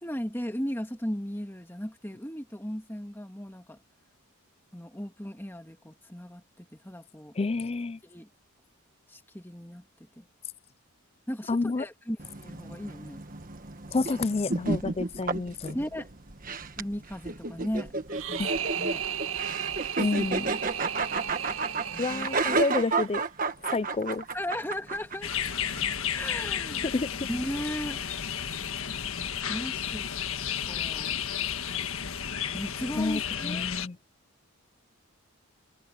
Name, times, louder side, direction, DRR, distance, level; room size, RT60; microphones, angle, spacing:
voice 1, 0.0-3.8 4.7-7.3 8.0-8.3 9.1-9.8 10.2-10.3 11.3-13.2 15.7-16.1 16.8-17.9 18.2-18.5 18.7-19.0 21.9-22.3 24.3-25.3 26.1-26.9 27.3-28.0 29.5-30.1 30.7-31.3 32.5-33.7, equal, 10° left, 2.1 m, -36 dB
voice 2, 7.4-8.0 11.5-11.9 13.9-15.8 18.4-18.5 20.0-20.5 22.0-23.2 23.7-24.2 26.9-27.3 33.0-34.0, left 3 dB, 25° left, 0.4 m, -29 dB
sound 1, 12.2-25.8, right 3 dB, 40° right, 1.4 m, -32 dB
sound 2, 18.1-23.2, right 9 dB, 65° right, 1.8 m, -35 dB
sound 3, 25.2-33.9, left 8 dB, 65° left, 1.6 m, -32 dB
head